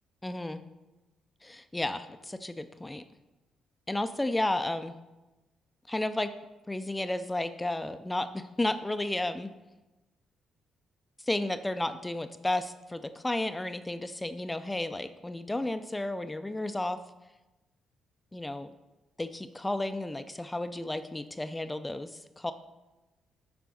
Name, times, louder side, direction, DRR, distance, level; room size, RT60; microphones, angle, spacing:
voice 1, 0.2-0.6 1.4-3.0 3.9-4.9 5.9-6.3 6.7-9.5 11.2-17.0 18.3-18.7 19.2-22.5, left 1 dB, 10° left, 10 dB, 0.4 m, -32 dB
8.1 x 5.1 x 6.3 m, 1.1 s
cardioid pair, 90°, 0 cm